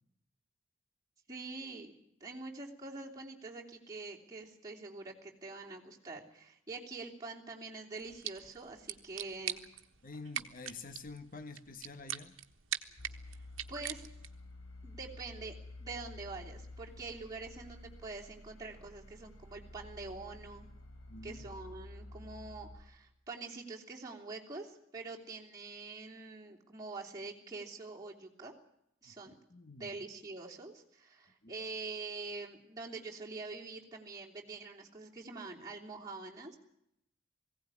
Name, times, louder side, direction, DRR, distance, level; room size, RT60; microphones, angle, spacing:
voice 1, 1.3-1.9 2.2-9.6 13.7-14.1 14.8-20.7 21.2-28.5 29.0-29.3 29.8-36.6, right 3 dB, 20° right, -3 dB, 3.1 m, -45 dB
sound 1, 8.0-14.5, right 11 dB, 80° right, 1.4 m, -43 dB
voice 2, 10.0-12.3 21.1-21.4 29.1-29.9 31.4-31.5, left 3 dB, 45° left, 9 dB, 1.4 m, -48 dB
sound 2, 13.0-22.8, left 2 dB, 75° left, 3.6 m, -51 dB
20.0 x 16.5 x 9.8 m, 0.78 s
head